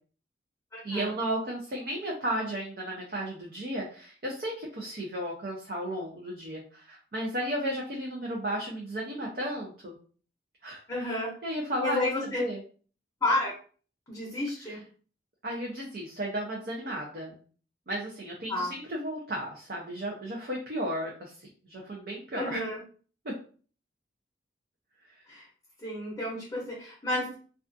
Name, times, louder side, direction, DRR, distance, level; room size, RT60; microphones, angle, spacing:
voice 1, 0.8-10.0 10.6-12.6 14.6-14.8 15.4-17.4 17.9-22.6 23.2-23.4, right 1 dB, 55° right, -2 dB, 0.5 m, -34 dB
voice 2, 10.9-11.3 11.8-12.4 13.2-13.5 14.1-14.8 18.5-18.7 22.3-22.8 25.3-25.4 25.8-27.4, left 1 dB, 15° left, -5 dB, 0.7 m, -30 dB
2.3 x 2.3 x 2.5 m, 0.41 s
head